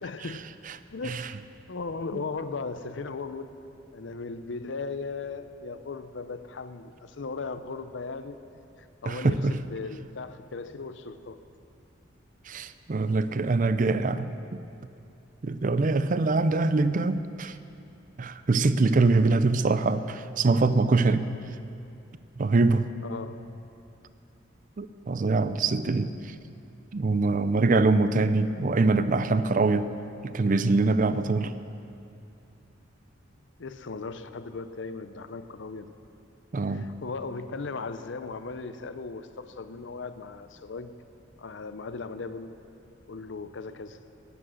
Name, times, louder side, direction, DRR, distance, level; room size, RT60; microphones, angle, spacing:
voice 1, 0.0-0.5 0.9-1.3 1.7-3.6 3.9-8.4 8.8-11.4 23.0-23.4 33.6-35.9 36.7-40.9 41.4-42.6 43.1-44.0, left 4 dB, 65° left, 11 dB, 0.6 m, -37 dB
voice 2, 9.1-9.5 12.5-14.6 15.4-17.6 18.2-21.3 22.4-22.9 24.8-26.3 26.9-29.9 30.2-31.5 36.5-36.9, right 3 dB, 45° right, 13 dB, 0.5 m, -24 dB
15.5 x 10.0 x 6.4 m, 2.6 s
head